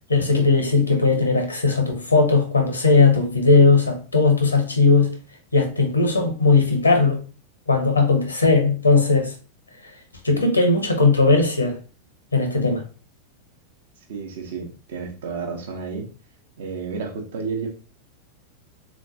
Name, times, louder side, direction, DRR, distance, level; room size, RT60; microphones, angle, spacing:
voice 1, 0.1-5.1 5.5-7.2 7.7-9.3 10.2-11.8 12.3-12.8, left 3 dB, 80° left, 0.9 m, -18 dB
voice 2, 14.1-16.1 16.6-17.7, right 5 dB, 60° right, 0.8 m, -31 dB
3.6 x 3.0 x 2.6 m
figure-of-eight pair, 90°, 0 cm